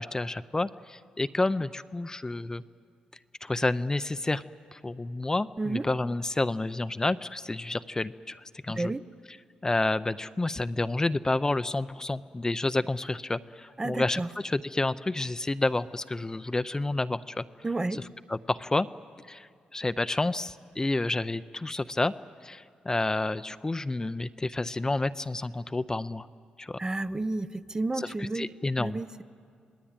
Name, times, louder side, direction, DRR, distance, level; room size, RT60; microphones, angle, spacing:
voice 1, 0.0-2.6 3.4-4.4 4.7-8.9 9.6-17.4 18.3-18.9 19.3-22.1 22.4-26.3 26.6-26.8 28.0-29.0, left 2 dB, 20° left, 13 dB, 0.6 m, -29 dB
voice 2, 13.8-14.3 17.6-18.0 26.8-28.5 28.8-29.2, right 2 dB, 25° right, 12 dB, 0.6 m, -31 dB
27.0 x 19.0 x 8.9 m, 2.2 s
cardioid pair, 70°, 3 cm